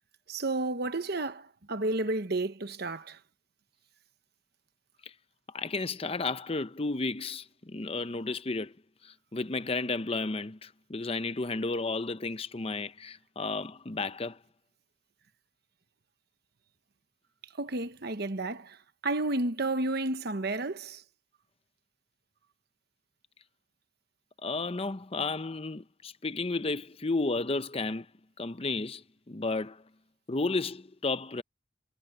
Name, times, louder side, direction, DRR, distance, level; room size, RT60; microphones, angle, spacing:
voice 1, 0.3-3.2 17.6-18.8 19.0-21.0, right 2 dB, 55° right, 1.2 m, -31 dB
voice 2, 5.5-8.7 9.0-14.4 24.4-28.1 28.4-29.8 30.3-31.4, left 3 dB, 30° left, 0.7 m, -33 dB
head